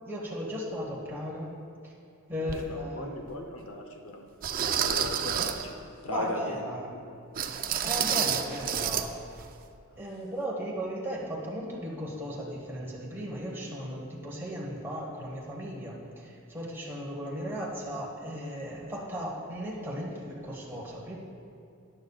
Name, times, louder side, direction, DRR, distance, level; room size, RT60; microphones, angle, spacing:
voice 1, 0.0-1.5 1.8-1.9 2.3-3.2 6.1-6.9 7.8-9.1 10.0-21.2, equal, 10° right, -4 dB, 1.3 m, -36 dB
voice 2, 2.4-4.3 4.8-6.8, left 1 dB, 65° left, 4 dB, 0.8 m, -38 dB
sound 1, 2.5-2.6 3.3-3.4 4.4-5.7 7.4-9.1 9.3-9.5 10.0-10.1, right 8 dB, 40° right, 0.4 m, -29 dB
13.5 x 9.9 x 2.4 m, 2.5 s
head